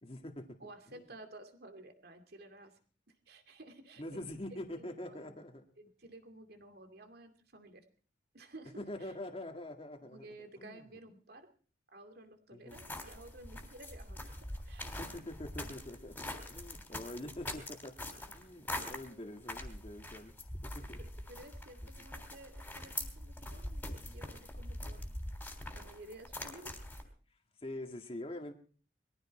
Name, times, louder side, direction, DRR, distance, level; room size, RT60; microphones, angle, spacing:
voice 1, 0.0-0.6 0.9-1.0 4.0-5.6 8.8-10.3 10.6-10.8 12.5-12.8 15.0-18.0 18.3-20.3 20.6-21.1 22.0-22.1 27.6-28.5, left 1 dB, 30° left, 4 dB, 1.9 m, -45 dB
voice 2, 0.6-2.7 3.3-5.3 5.8-7.8 8.3-9.1 10.0-11.5 11.9-14.9 21.0-25.1 25.7-26.8, right 1 dB, 60° right, 6 dB, 2.6 m, -54 dB
sound 1, 12.7-27.0, left 1 dB, 10° left, 3.4 m, -44 dB
22.0 x 15.0 x 4.3 m, 0.42 s
head